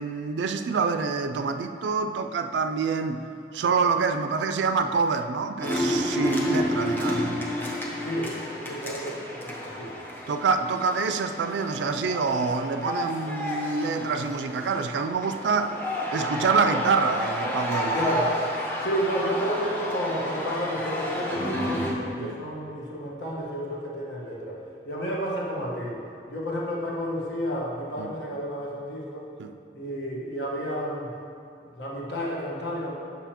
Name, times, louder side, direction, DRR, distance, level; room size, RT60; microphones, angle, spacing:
voice 1, 0.0-3.3 3.5-7.3 10.3-15.8 16.1-18.0 22.2-22.4 28.0-28.1 29.4-29.5, right 4 dB, 80° right, 8 dB, 0.3 m, -26 dB
sound 1, 5.6-21.9, left 1 dB, 10° left, 0.6 m, -30 dB
voice 2, 8.0-10.0 15.4-15.5 17.9-18.4 18.8-24.6 24.8-26.0 26.3-29.2 29.7-31.1 31.8-32.9, equal, 75° left, -4 dB, 1.2 m, -31 dB
7.0 x 6.0 x 2.9 m, 2.5 s
head